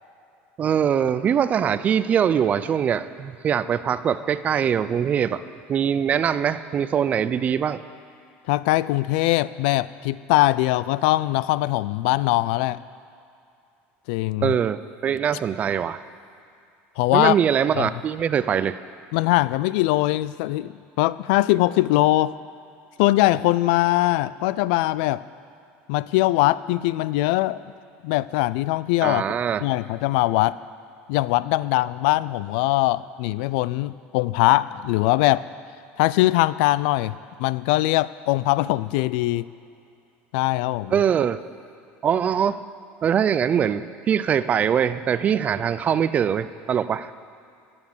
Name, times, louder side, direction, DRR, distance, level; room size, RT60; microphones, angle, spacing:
voice 1, 0.6-5.4 5.7-7.8 14.4-16.0 17.1-18.8 29.0-29.6 40.9-41.4 42.0-42.6 43.0-47.1, right 8 dB, 30° right, 14 dB, 0.4 m, -22 dB
voice 2, 8.5-12.8 14.1-14.5 17.0-17.4 17.8-17.9 19.1-22.3 23.0-25.2 25.9-27.6 28.0-29.2 29.6-30.6 31.1-35.4 36.0-39.5 40.3-40.9, left 17 dB, 75° left, 18 dB, 0.3 m, -21 dB
17.5 x 7.0 x 7.2 m, 2.5 s
cardioid pair, 145°, 5 cm